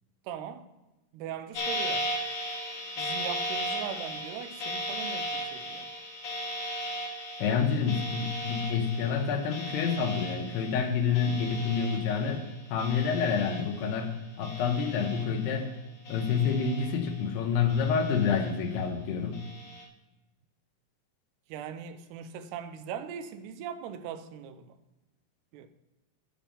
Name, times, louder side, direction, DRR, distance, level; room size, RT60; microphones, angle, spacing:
voice 1, 0.3-0.7 1.1-2.1 3.0-5.9 21.5-24.7 25.5-25.7, right 8 dB, 85° right, 2.8 m, -40 dB
sound 1, 1.5-14.1 14.4-15.6 16.0-17.3 17.7-18.7 19.3-19.8, equal, 55° left, 2.0 m, -37 dB
voice 2, 7.4-12.4 12.7-14.1 14.4-15.7 16.1-19.4, left 6 dB, 90° left, 3.0 m, -28 dB
8.7 x 5.3 x 7.3 m
omnidirectional pair, 4.6 m